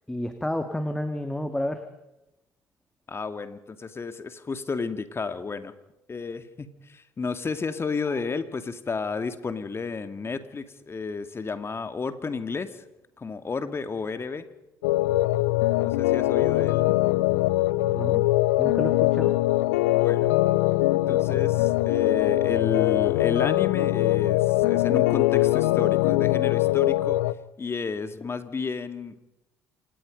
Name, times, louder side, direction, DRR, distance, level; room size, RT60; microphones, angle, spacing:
voice 1, 0.1-1.8 17.9-18.2 18.6-19.4, left 1 dB, 5° left, 8 dB, 2.1 m, -30 dB
voice 2, 3.1-5.7 6.1-12.8 13.2-14.5 15.8-16.8 19.9-20.3 20.9-27.2 27.6-29.2, left 4 dB, 30° left, 10 dB, 2.2 m, -32 dB
sound 1, 14.8-27.3, left 17 dB, 75° left, 0.7 m, -22 dB
27.0 x 19.5 x 5.3 m, 0.89 s
hypercardioid pair, 55°, 8 cm